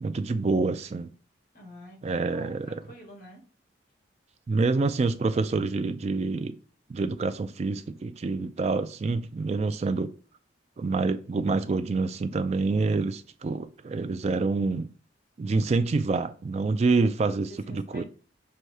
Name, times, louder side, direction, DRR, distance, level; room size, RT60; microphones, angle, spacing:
voice 1, 0.0-1.1 2.0-2.8 4.5-6.6 6.9-10.1 10.8-14.9 15.4-18.0, right 3 dB, 35° right, 0.3 m, -27 dB
voice 2, 1.5-3.4 17.5-18.0, left 1 dB, 50° left, 1.7 m, -47 dB
6.3 x 2.2 x 2.7 m
head